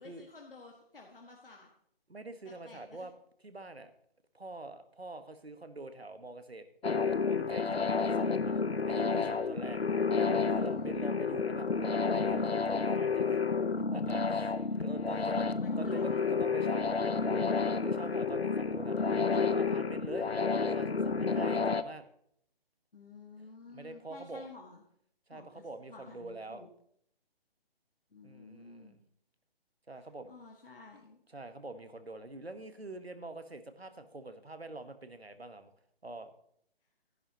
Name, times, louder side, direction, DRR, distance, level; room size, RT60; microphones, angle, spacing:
voice 1, 0.0-1.7 2.6-3.1 9.7-10.9 15.1-16.4 22.9-24.8 25.3-25.6 25.9-26.7 28.1-29.0 30.3-31.2, left 3 dB, 65° left, 0 dB, 1.8 m, -52 dB
voice 2, 2.1-3.1 3.4-3.9 4.3-6.7 7.2-13.4 13.7-15.5 15.8-22.0 23.7-24.4 25.3-26.6 28.2-29.0 29.9-30.3 31.3-35.7 36.0-36.3, right 2 dB, 85° right, 10 dB, 1.3 m, -45 dB
sound 1, 6.8-21.8, left 5 dB, 85° left, 0.7 m, -30 dB
12.5 x 11.0 x 2.9 m, 0.69 s
figure-of-eight pair, 140°, 30 cm